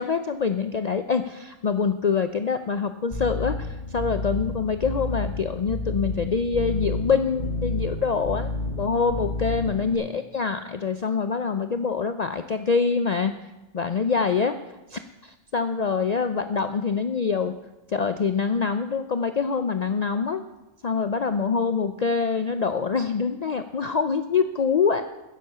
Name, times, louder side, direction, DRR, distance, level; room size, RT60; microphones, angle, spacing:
voice 1, 0.0-8.5 8.8-13.4 13.7-14.6 14.9-17.5 17.9-20.4 20.8-25.1, left 5 dB, 75° left, 9 dB, 0.3 m, -25 dB
sound 1, 3.1-10.0, left 2 dB, 30° left, 4.7 m, -30 dB
14.5 x 10.5 x 5.7 m, 1.0 s
omnidirectional pair, 1.5 m